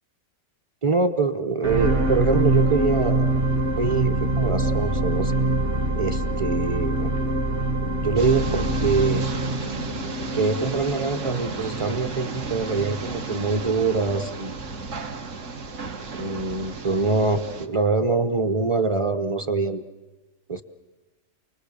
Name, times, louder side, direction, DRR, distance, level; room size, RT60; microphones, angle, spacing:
voice 1, 0.8-3.3 3.8-5.3 6.0-7.1 7.9-9.2 10.4-14.6 16.1-19.8 20.5-20.6, right 4 dB, 30° right, 6 dB, 0.7 m, -24 dB
sound 1, 1.6-14.0 14.6-14.7, right 2 dB, 50° right, 1.6 m, -25 dB
sound 2, 8.2-17.7, right 4 dB, 65° right, 1.5 m, -34 dB
28.5 x 20.0 x 6.8 m, 1.2 s
omnidirectional pair, 1.4 m